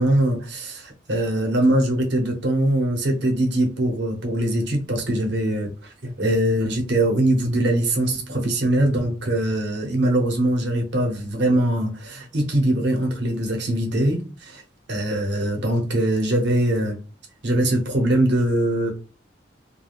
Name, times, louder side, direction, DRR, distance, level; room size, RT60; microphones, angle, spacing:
voice 1, 0.0-5.7 6.0-14.6 14.9-17.0 17.4-18.9, right 1 dB, 60° right, 0.8 m, -22 dB
2.4 x 2.2 x 3.3 m
head